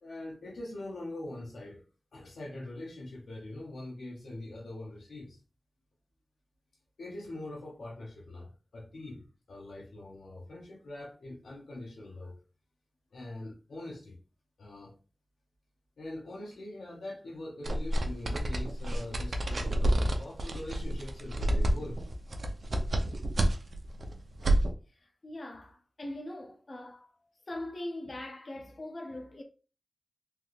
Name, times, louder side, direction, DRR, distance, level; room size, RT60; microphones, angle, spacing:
voice 1, 0.0-1.8 2.1-5.4 7.0-12.4 13.1-14.2 14.6-15.0 16.0-22.0, left 1 dB, 90° left, 0.8 m, -43 dB
sound 1, 17.6-24.7, right 1 dB, 65° right, 0.5 m, -29 dB
voice 2, 24.9-27.1 27.5-29.4, left 1 dB, 55° left, 0.7 m, -41 dB
3.4 x 2.8 x 2.4 m
cardioid pair, 45°, 0 cm